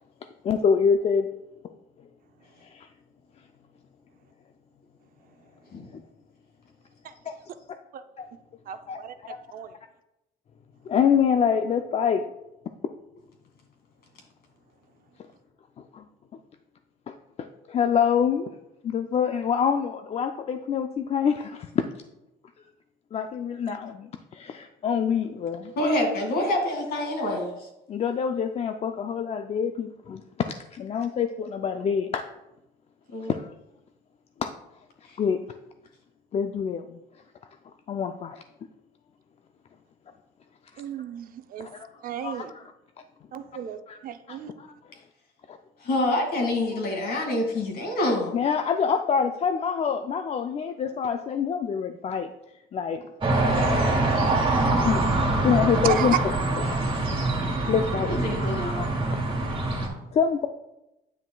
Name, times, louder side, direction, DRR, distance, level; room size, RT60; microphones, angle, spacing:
voice 1, 0.4-1.3 1.6-1.7 2.6-2.9 5.9-6.0 7.3-7.4 8.2-8.3 8.9-9.0 9.3-9.4 10.9-12.2 15.9-16.0 17.1-18.5 18.8-21.8 23.1-25.7 27.9-30.2 30.7-32.2 33.3-33.5 34.4-34.5 35.2-35.4 36.3-37.0 37.9-38.4 41.6-41.8 42.2-42.6 43.9-44.0 44.3-44.7 45.5-45.6 48.3-52.3 52.7-53.0 53.4-54.3 54.8-55.0 55.4-56.1 56.6-56.8 57.3-58.9 60.1-60.5, left 7 dB, 40° left, 7 dB, 0.4 m, -26 dB
voice 2, 8.7-9.1 9.5-9.7 23.7-23.8 40.8-41.7 42.0-42.5 43.3-44.5 55.8-56.2, right 9 dB, 55° right, 9 dB, 0.6 m, -32 dB
voice 3, 25.8-27.7 33.1-33.3 45.8-48.4 53.2-54.1 58.1-58.7, left 1 dB, 65° left, 1 dB, 2.1 m, -27 dB
sound 1, 53.2-59.9, right 2 dB, 30° right, 1.7 m, -24 dB
9.3 x 5.7 x 2.3 m, 0.91 s
cardioid pair, 110°, 17 cm